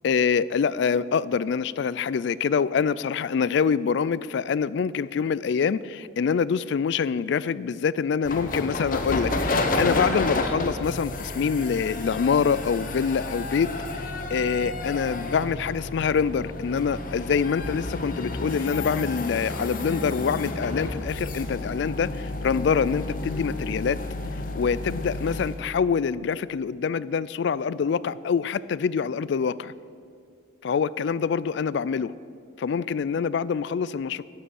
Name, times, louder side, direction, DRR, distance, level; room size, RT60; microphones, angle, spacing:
voice 1, 0.0-24.0 24.5-29.7 30.6-32.1 32.6-34.2, left 6 dB, 60° left, 18 dB, 0.3 m, -25 dB
sound 1, 8.2-25.6, left 2 dB, 45° left, 0.9 m, -31 dB
11.5 x 7.9 x 8.1 m, 2.3 s
head